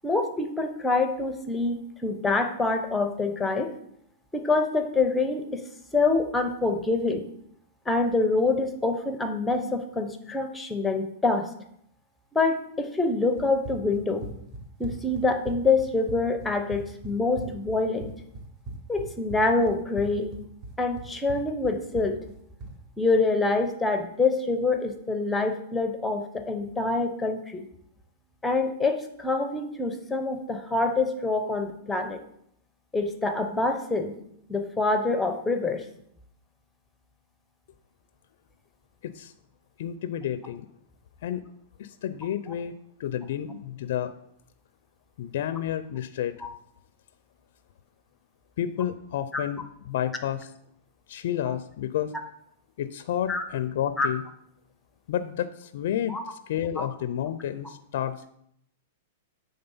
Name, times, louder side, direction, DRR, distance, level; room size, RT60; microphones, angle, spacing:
voice 1, 0.0-3.7 4.3-5.6 5.9-7.2 7.9-11.5 12.3-14.3 14.8-18.1 18.9-20.4 20.8-22.2 23.0-27.7 28.4-32.2 32.9-34.2 34.5-35.8 46.4-46.5 49.3-49.4 53.3-53.4 54.0-54.1 56.1-56.2 56.8-56.9, left 3 dB, 5° left, 6 dB, 0.7 m, -26 dB
Run, 13.4-22.8, right 2 dB, 30° right, 1.2 m, -40 dB
voice 2, 39.8-40.7 41.2-41.4 41.8-42.7 43.0-44.1 45.2-46.3 48.6-50.5 51.1-52.1 52.8-54.2 55.1-58.3, left 10 dB, 65° left, 10 dB, 0.4 m, -30 dB
7.8 x 3.7 x 5.5 m, 0.72 s
hypercardioid pair, 145°, 0 cm